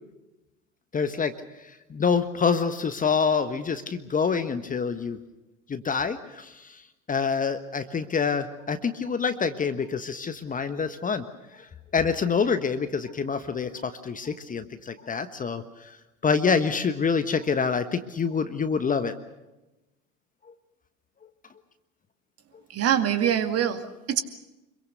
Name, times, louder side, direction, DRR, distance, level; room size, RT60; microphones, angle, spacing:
voice 1, 0.9-1.3 1.9-5.2 5.7-6.8 7.1-11.2 11.5-11.7 11.9-16.0 16.2-19.2, left 5 dB, 20° left, 10 dB, 1.3 m, -26 dB
voice 2, 22.7-24.2, right 9 dB, 35° right, 8 dB, 2.3 m, -24 dB
26.0 x 23.0 x 6.7 m, 1.0 s
figure-of-eight pair, 75°, 41 cm